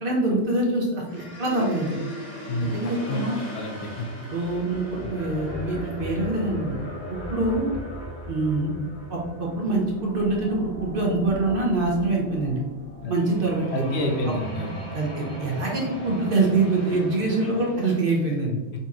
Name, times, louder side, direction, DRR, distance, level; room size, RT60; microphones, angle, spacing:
voice 1, 0.0-2.0 2.6-3.4 4.3-6.7 7.1-7.7 8.3-8.7 9.1-12.6 13.1-13.8 14.9-18.6, right 2 dB, 50° right, -1 dB, 1.0 m, -25 dB
sound 1, 1.1-18.0, right 1 dB, 35° left, 1.0 m, -37 dB
voice 2, 3.5-4.1 5.0-5.1 13.0-13.1 13.7-14.8, left 1 dB, 65° left, 2 dB, 0.9 m, -28 dB
4.0 x 2.8 x 3.6 m, 1.1 s
omnidirectional pair, 1.2 m